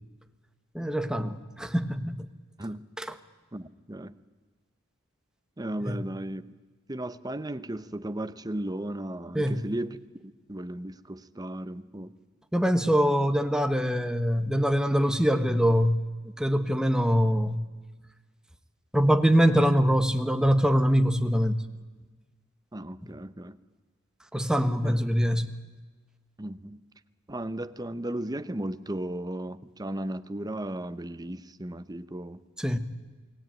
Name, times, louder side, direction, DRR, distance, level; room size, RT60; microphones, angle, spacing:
voice 1, 0.7-2.3 3.0-3.2 5.8-6.0 9.3-9.7 12.5-16.0 16.4-17.6 18.9-21.6 24.3-25.5 32.6-32.8, equal, 5° right, 1.3 m, -24 dB
voice 2, 3.5-4.1 5.6-6.4 6.9-10.0 10.5-12.1 22.7-23.6 24.8-25.0 26.4-26.8 27.3-32.4, right 1 dB, 20° right, 0.9 m, -35 dB
28.5 x 20.0 x 9.2 m
head